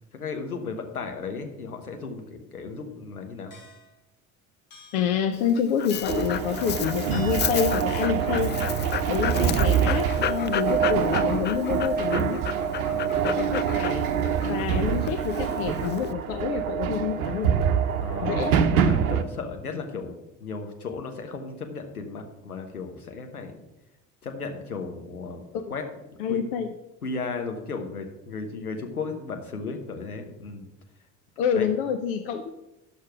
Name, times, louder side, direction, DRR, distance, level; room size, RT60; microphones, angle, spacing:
voice 1, 0.1-3.5 9.2-9.5 12.9-13.2 18.0-18.5 18.9-23.5 24.2-25.4 25.7-25.8 26.1-26.4 27.0-30.7 31.5-31.7, left 4 dB, 90° left, 5 dB, 1.2 m, -35 dB
sound 1, 3.5-3.9 4.7-5.1 5.9-6.4 7.1-7.6, left 3 dB, 55° left, 2.7 m, -45 dB
voice 2, 4.9-8.5 9.1-12.4 13.2-14.1 14.4-17.5 18.2-18.6 25.5-25.7 26.2-26.7 31.4-32.5, left 7 dB, 70° left, 7 dB, 0.8 m, -27 dB
Dog, 5.3-16.1, left 10 dB, 25° left, 0.4 m, -33 dB
sound 2, 6.1-19.2, right 8 dB, 80° right, 0.8 m, -25 dB
10.5 x 6.5 x 5.9 m, 0.93 s
figure-of-eight pair, 55°, 43 cm